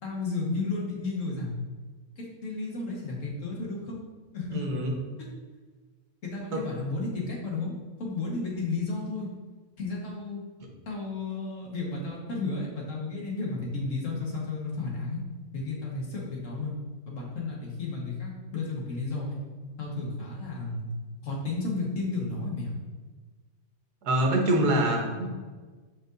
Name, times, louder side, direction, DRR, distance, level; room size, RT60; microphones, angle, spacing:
voice 1, 0.0-1.6 2.2-4.0 4.3-4.6 6.2-7.7 8.0-9.3 9.8-10.4 10.8-15.2 15.5-16.7 17.1-19.4 19.8-20.9 21.2-22.7, left 3 dB, 55° left, -3 dB, 1.7 m, -33 dB
voice 2, 4.5-4.9 6.5-6.6 24.0-25.3, right 1 dB, 85° right, 1 dB, 1.6 m, -25 dB
7.7 x 5.2 x 2.6 m, 1.4 s
omnidirectional pair, 1.7 m